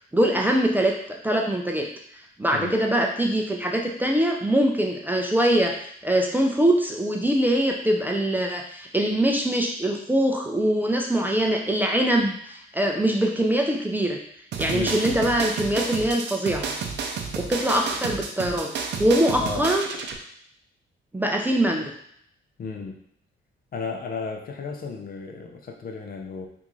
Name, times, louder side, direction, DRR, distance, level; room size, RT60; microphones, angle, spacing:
voice 1, 0.1-1.9 2.4-14.2 14.6-16.7 17.4-18.7 19.0-19.9 21.1-21.9, right 1 dB, 10° right, 1 dB, 0.4 m, -23 dB
sound 1, 14.5-20.2, right 5 dB, 60° right, 0.5 m, -31 dB
voice 2, 14.7-15.1 19.4-19.7 22.6-23.0 23.7-26.5, left 4 dB, 45° left, 3 dB, 0.6 m, -33 dB
3.5 x 2.6 x 3.1 m, 0.69 s
cardioid pair, 90°, 20 cm